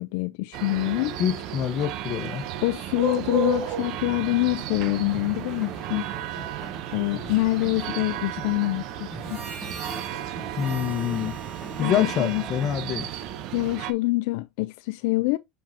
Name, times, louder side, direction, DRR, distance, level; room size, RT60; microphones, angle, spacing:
voice 1, 0.0-1.2 2.6-6.1 6.9-9.4 11.8-12.4 13.5-15.4, left 21 dB, 70° left, 0.4 m, -25 dB
sound 1, 0.5-13.9, right 11 dB, 50° right, 0.9 m, -34 dB
voice 2, 1.2-2.4 10.6-11.4 11.8-13.1, left 10 dB, 35° left, 1.3 m, -26 dB
sound 2, 5.1-13.1, left 1 dB, ahead, 1.3 m, -44 dB
Harmonica, 9.1-13.7, right 5 dB, 35° right, 5.2 m, -43 dB
7.3 x 5.8 x 2.9 m
cardioid pair, 165°, 0 cm